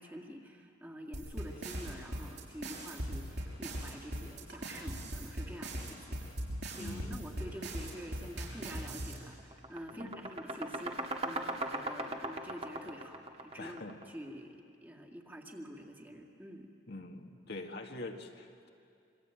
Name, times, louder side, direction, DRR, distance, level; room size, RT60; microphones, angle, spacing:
voice 1, 0.0-6.2 6.6-16.7, equal, 10° right, 1 dB, 2.2 m, -47 dB
sound 1, 1.1-9.1, right 1 dB, 65° right, 5.9 m, -39 dB
voice 2, 6.8-7.2 9.9-10.2 13.6-14.0 16.9-18.7, left 2 dB, 60° left, 3 dB, 1.8 m, -44 dB
sound 2, 8.6-8.8 9.2-14.1, right 2 dB, 35° right, 1.9 m, -39 dB
26.5 x 23.5 x 9.1 m, 2.4 s
head